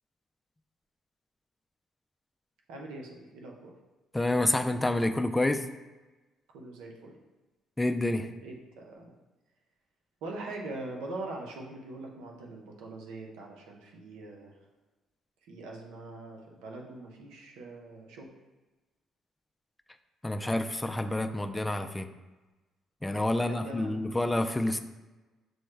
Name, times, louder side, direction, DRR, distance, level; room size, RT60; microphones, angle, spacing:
voice 1, 2.7-3.7 6.5-7.1 8.4-9.1 10.2-14.5 15.4-18.3 23.4-24.2, right 2 dB, 90° right, 0 dB, 0.7 m, -42 dB
voice 2, 4.1-5.7 7.8-8.3 20.2-22.1 23.0-24.8, left 1 dB, 10° left, 7 dB, 0.3 m, -28 dB
6.2 x 2.2 x 3.2 m, 1.2 s
cardioid pair, 85°, 0 cm